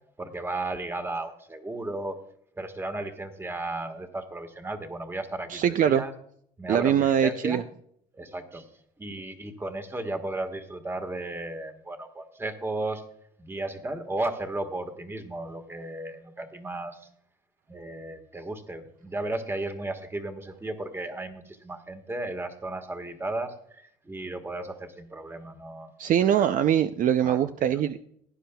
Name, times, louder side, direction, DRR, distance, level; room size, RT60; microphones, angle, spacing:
voice 1, 0.2-2.2 2.6-6.1 6.6-7.6 8.2-8.6 9.0-13.0 13.4-17.0 17.7-25.9 26.2-26.5 27.2-27.4 27.8-27.9, right 2 dB, 15° right, 6 dB, 1.5 m, -34 dB
voice 2, 5.5-6.0 6.7-7.6 26.0-28.1, right 9 dB, 50° right, 10 dB, 0.5 m, -23 dB
17.5 x 10.0 x 2.3 m, 0.67 s
cardioid pair, 110°, 17 cm